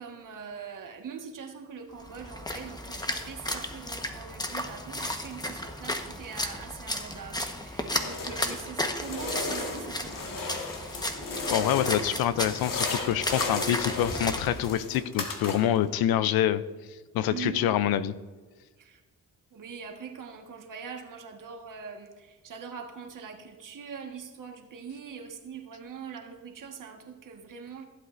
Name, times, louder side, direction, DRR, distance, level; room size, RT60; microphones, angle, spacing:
voice 1, 0.0-10.7 17.3-17.7 18.8-19.0 19.5-27.8, right 6 dB, 60° right, 4 dB, 1.5 m, -42 dB
Splash splatter, 2.0-14.7, left 1 dB, 10° left, 1.1 m, -34 dB
sound 1, 7.8-8.7 9.0-12.2 12.4-15.8, left 3 dB, 65° left, 1.7 m, -35 dB
voice 2, 11.5-16.6 17.1-18.1, left 11 dB, 85° left, 15 dB, 0.6 m, -26 dB
15.0 x 8.1 x 2.6 m, 1.3 s
cardioid pair, 65°, 36 cm